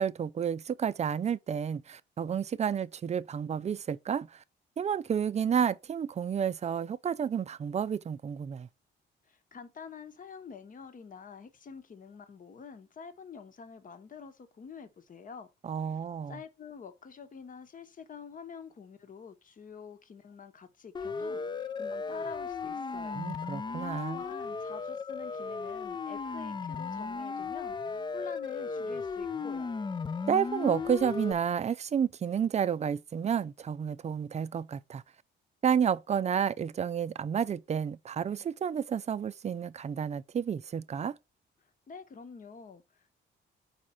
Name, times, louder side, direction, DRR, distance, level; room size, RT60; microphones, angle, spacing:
voice 1, 0.0-4.4 4.8-8.7 15.6-16.4 23.1-24.2 30.3-35.0 35.6-41.2, right 8 dB, 35° right, 0.5 m, -30 dB
voice 2, 9.2-15.5 15.8-16.0 16.3-23.2 23.7-29.7 41.9-43.2, left 6 dB, 45° left, 1.1 m, -47 dB
Siren, 20.9-31.3, left 4 dB, 25° left, 0.4 m, -36 dB
4.8 x 4.4 x 5.6 m
cardioid pair, 90°, 20 cm